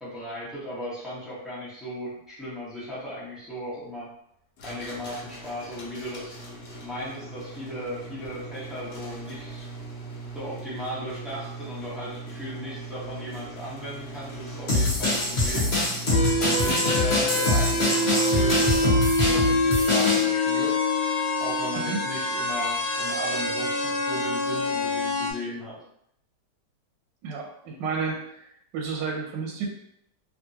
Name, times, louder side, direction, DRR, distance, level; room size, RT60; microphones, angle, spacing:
voice 1, 0.0-4.1 4.6-6.3 6.8-9.6 10.3-15.7 16.4-20.7 21.4-25.8, equal, ahead, -9 dB, 0.7 m, -36 dB
sound 1, 4.6-19.3, right 3 dB, 65° left, 1.2 m, -40 dB
sound 2, 14.7-20.2, left 2 dB, 40° left, 1.1 m, -24 dB
sound 3, 16.1-25.3, left 2 dB, 85° left, 1.5 m, -25 dB
voice 2, 27.2-28.4 28.7-29.7, right 5 dB, 90° right, 0 dB, 1.3 m, -31 dB
2.9 x 2.5 x 2.8 m, 0.71 s
omnidirectional pair, 1.9 m